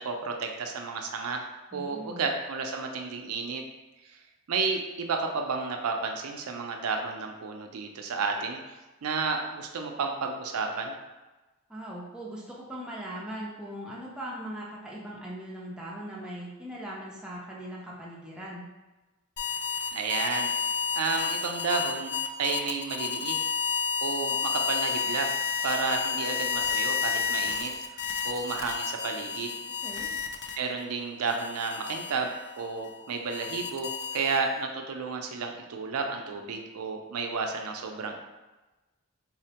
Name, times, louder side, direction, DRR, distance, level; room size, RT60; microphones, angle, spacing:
voice 1, 0.0-1.5 1.7-3.6 4.0-4.2 4.5-8.8 9.0-10.9 19.9-23.3 24.0-25.4 25.6-27.7 28.2-29.5 30.5-38.2, right 4 dB, 80° right, 3 dB, 0.4 m, -32 dB
voice 2, 1.7-2.2 11.7-18.7 29.8-30.1, right 1 dB, 5° right, -5 dB, 0.5 m, -40 dB
sound 1, 19.4-30.8 31.3-34.6, left 6 dB, 50° left, 0.3 m, -31 dB
4.0 x 2.1 x 2.8 m, 1.1 s
head